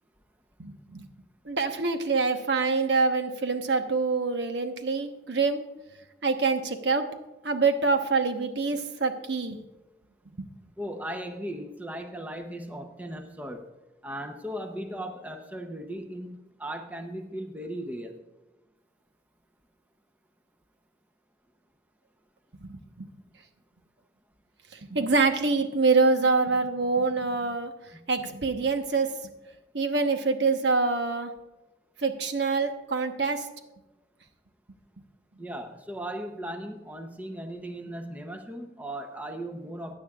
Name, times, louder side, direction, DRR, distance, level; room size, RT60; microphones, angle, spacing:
voice 1, 0.6-1.1 1.4-5.6 6.2-7.1 7.4-9.6 10.4-10.5 22.6-23.1 24.7-27.7 28.1-29.1 29.7-31.3 32.0-33.5, right 4 dB, 75° right, 6 dB, 1.0 m, -25 dB
voice 2, 10.8-13.7 14.0-18.2 27.9-28.0 35.4-39.9, right 1 dB, 10° right, 5 dB, 0.7 m, -37 dB
16.0 x 9.8 x 2.4 m, 1.1 s
head